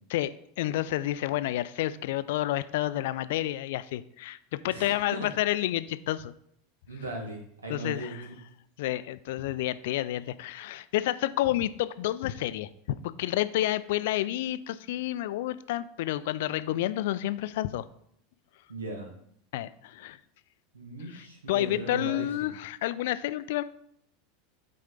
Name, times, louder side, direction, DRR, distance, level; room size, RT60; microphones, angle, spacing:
voice 1, 0.1-6.3 7.7-8.2 8.8-12.7 13.0-17.8 19.5-20.2 21.1-23.6, left 14 dB, 60° left, 15 dB, 0.3 m, -30 dB
voice 2, 6.9-8.4 18.7-19.1 20.7-22.5, right 2 dB, 80° right, 1 dB, 1.5 m, -38 dB
7.5 x 4.3 x 3.8 m, 0.70 s
figure-of-eight pair, 85°, 0 cm